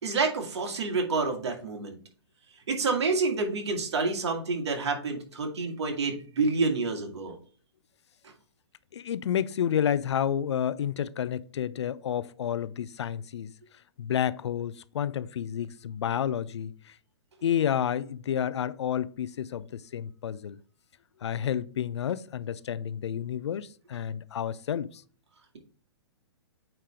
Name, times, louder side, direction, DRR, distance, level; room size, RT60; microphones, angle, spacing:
voice 1, 0.0-2.0 2.7-7.4, right 4 dB, 70° right, 2.0 m, -28 dB
voice 2, 8.9-13.5 14.0-16.9 17.4-20.6 21.2-25.0, left 9 dB, 75° left, 0.5 m, -30 dB
8.8 x 3.4 x 3.6 m
hypercardioid pair, 130°, 14 cm